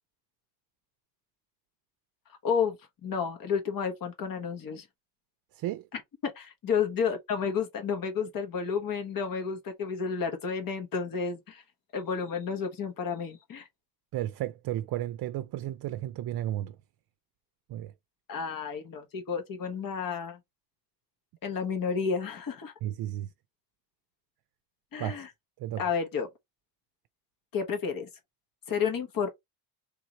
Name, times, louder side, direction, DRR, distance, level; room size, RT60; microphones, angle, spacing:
voice 1, 2.4-2.8 3.0-4.8 6.2-11.6 11.9-13.7 18.3-20.4 21.4-22.7 24.9-25.3 25.8-26.3 27.5-28.1 28.7-29.3, left 6 dB, 55° left, 1.4 m, -31 dB
voice 2, 5.5-5.9 14.1-16.8 17.7-17.9 22.8-23.3 25.0-25.2 25.6-25.8, right 13 dB, 60° right, 0.5 m, -33 dB
3.4 x 3.1 x 4.0 m
cardioid pair, 115°, 41 cm